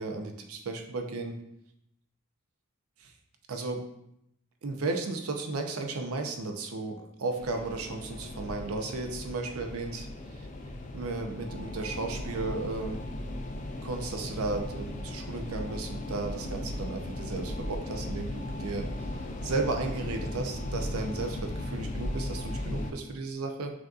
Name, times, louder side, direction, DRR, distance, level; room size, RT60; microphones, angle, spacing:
voice 1, 0.0-1.4 3.0-3.1 3.5-3.8 4.6-10.1 10.3-10.5 10.9-13.0 13.8-18.8 19.4-23.7, right 3 dB, 85° right, 3 dB, 0.6 m, -34 dB
sound 1, 7.4-22.9, left 1 dB, 35° left, 0.3 m, -37 dB
6.0 x 2.6 x 2.4 m, 0.79 s
head